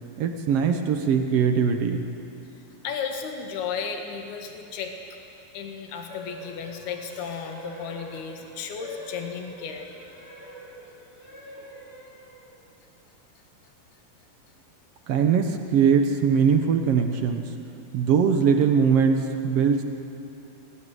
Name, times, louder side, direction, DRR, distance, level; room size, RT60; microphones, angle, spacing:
voice 1, 0.2-2.0 15.1-17.5 17.9-19.8, right 6 dB, 70° right, 5 dB, 1.4 m, -21 dB
voice 2, 2.8-4.9 5.5-9.9, left 6 dB, 75° left, 4 dB, 3.7 m, -34 dB
sound 1, 6.1-12.6, right 1 dB, 25° left, 3.5 m, -44 dB
22.0 x 19.0 x 9.5 m, 2.7 s
omnidirectional pair, 4.5 m